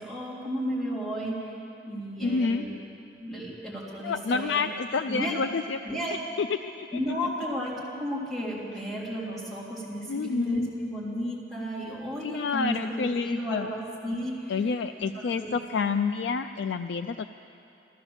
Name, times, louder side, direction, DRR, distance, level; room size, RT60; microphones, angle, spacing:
voice 1, 0.0-1.6 1.9-2.7 3.2-4.6 5.1-5.4 5.8-6.2 6.9-14.5 15.0-15.5, equal, ahead, -8 dB, 3.5 m, -33 dB
voice 2, 2.2-2.6 4.0-6.0 6.4-7.2 10.1-10.7 12.2-13.7 14.5-17.3, left 4 dB, 70° left, 9 dB, 0.4 m, -29 dB
14.0 x 14.0 x 7.2 m, 2.6 s
head